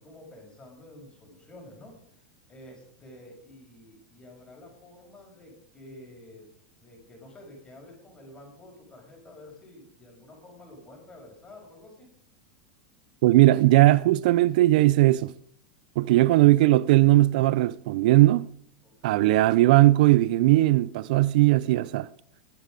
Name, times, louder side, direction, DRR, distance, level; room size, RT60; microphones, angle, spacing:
voice 1, 0.0-1.9 2.5-6.5 6.8-12.1 16.0-16.4 18.8-19.3, left 1 dB, 20° left, 6.2 m, -49 dB
voice 2, 13.2-15.3 16.0-18.5 19.0-22.1, right 17 dB, 70° right, 0.5 m, -19 dB
21.0 x 8.3 x 5.2 m
supercardioid pair, 140°, 5 cm